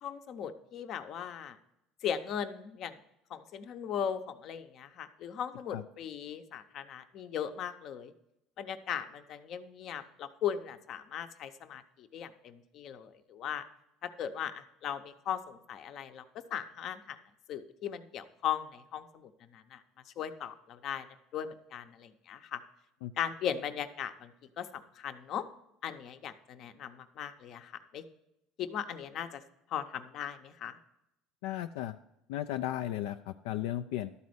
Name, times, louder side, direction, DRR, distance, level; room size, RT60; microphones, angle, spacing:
voice 1, 0.0-1.6 2.0-3.0 3.3-8.1 8.6-13.6 14.0-16.2 16.5-17.2 17.5-21.1 21.3-22.6 23.2-24.3 24.6-25.5 25.8-28.0 28.6-29.4 29.7-30.8, left 9 dB, 55° left, 10 dB, 0.7 m, -38 dB
voice 2, 31.4-32.0 32.3-34.1, left 13 dB, 85° left, 8 dB, 0.3 m, -35 dB
12.0 x 4.2 x 7.9 m, 0.84 s
supercardioid pair, 110°, 0 cm